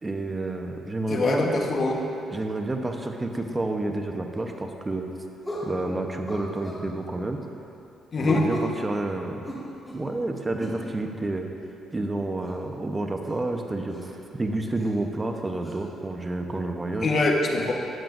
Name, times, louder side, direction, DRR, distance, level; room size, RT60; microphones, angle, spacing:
voice 1, 0.0-1.6 2.3-5.1 5.6-7.4 8.2-9.6 9.9-11.5 11.9-17.1, right 2 dB, 20° right, 3 dB, 0.9 m, -30 dB
voice 2, 1.1-2.0 8.1-8.5 17.0-17.7, left 2 dB, 45° left, 0 dB, 1.3 m, -23 dB
sound 1, 4.3-4.5 5.4-5.7 6.3-6.8 8.2-8.8 9.4-10.1 10.6-10.8 12.4-12.5 13.2-13.4 13.9-14.1 14.8-14.9 15.6-15.7, equal, 15° left, 2.1 m, -35 dB
14.0 x 8.8 x 2.6 m, 2.8 s
cardioid pair, 90°, 0 cm